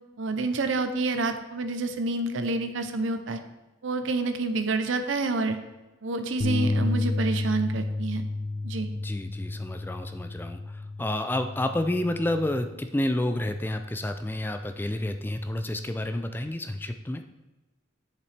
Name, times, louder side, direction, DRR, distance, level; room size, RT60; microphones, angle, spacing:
voice 1, 0.2-3.4 3.8-5.6 6.0-8.2 8.6-8.9, right 3 dB, 80° right, 8 dB, 0.6 m, -28 dB
sound 1, 6.4-12.7, left 2 dB, 55° left, 0.6 m, -31 dB
voice 2, 9.0-17.2, left 1 dB, 10° left, 8 dB, 0.3 m, -30 dB
8.2 x 7.0 x 3.3 m, 1.1 s
head